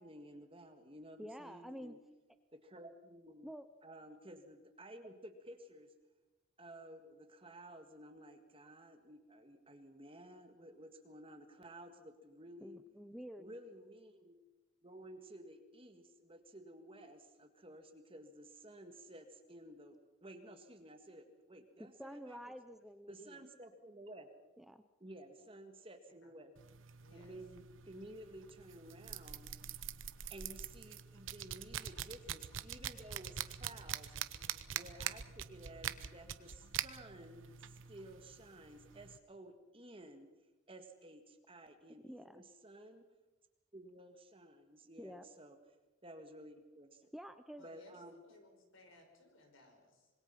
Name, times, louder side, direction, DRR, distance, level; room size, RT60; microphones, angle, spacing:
voice 1, 0.0-2.0 2.5-3.5 3.8-5.9 6.6-12.8 13.4-14.4 14.8-22.5 23.1-24.3 25.0-26.5 27.1-29.6 30.3-34.3 34.7-40.3 40.7-43.0 43.7-45.6 46.0-47.1 47.6-48.2, right 1 dB, 25° right, 6 dB, 1.8 m, -54 dB
voice 2, 1.2-2.0 3.4-3.7 12.6-13.5 21.8-23.4 24.6-24.8 42.0-42.4 45.0-45.2 47.1-47.6, equal, ahead, 9 dB, 0.6 m, -49 dB
sound 1, 26.6-39.2, right 9 dB, 70° right, 0.9 m, -45 dB
voice 3, 27.0-27.4 34.3-35.0 47.5-50.1, left 2 dB, 75° left, 4 dB, 5.3 m, -63 dB
26.0 x 21.0 x 5.9 m, 1.1 s
head